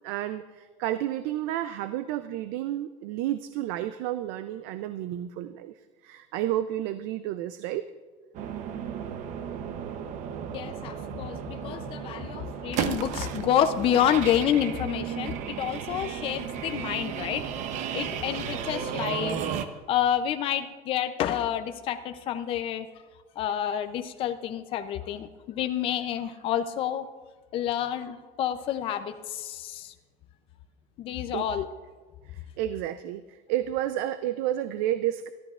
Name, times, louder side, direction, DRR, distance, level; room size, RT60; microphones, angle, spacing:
voice 1, 0.0-5.7 6.0-7.9 31.3-31.5 32.6-35.3, right 13 dB, 85° right, 11 dB, 0.5 m, -31 dB
sound 1, 8.3-19.7, right 8 dB, 50° right, 0.8 m, -34 dB
voice 2, 10.5-17.4 17.9-19.4 19.9-22.9 23.4-27.0 27.5-29.9 31.0-31.7, left 10 dB, 35° left, 8 dB, 0.5 m, -28 dB
23.0 x 13.5 x 2.4 m, 1.4 s
cardioid pair, 180°, 16 cm